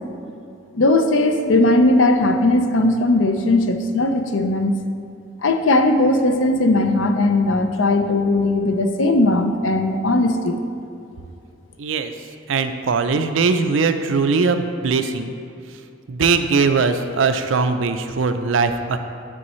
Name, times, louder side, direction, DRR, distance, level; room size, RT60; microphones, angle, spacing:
voice 1, 0.7-4.7 5.4-10.6, left 2 dB, 75° left, 6 dB, 0.6 m, -18 dB
voice 2, 11.8-12.1 12.5-15.3 16.1-19.0, right 4 dB, 75° right, 8 dB, 0.5 m, -20 dB
9.8 x 6.3 x 3.1 m, 2.6 s
head